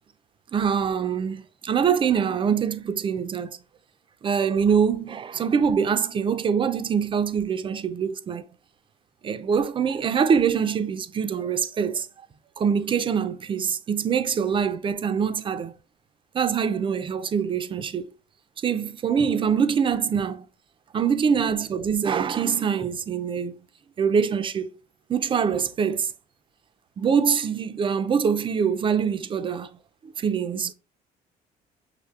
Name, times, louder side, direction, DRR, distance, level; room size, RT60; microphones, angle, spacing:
voice 1, 0.5-3.6 4.2-8.5 9.2-12.1 12.6-15.8 16.3-18.1 18.6-20.5 20.9-23.6 24.0-24.7 25.1-26.1 27.0-29.8 30.0-30.7, right 7 dB, 30° right, 0.4 m, -24 dB
5.7 x 3.1 x 2.3 m
cardioid pair, 110°, 17 cm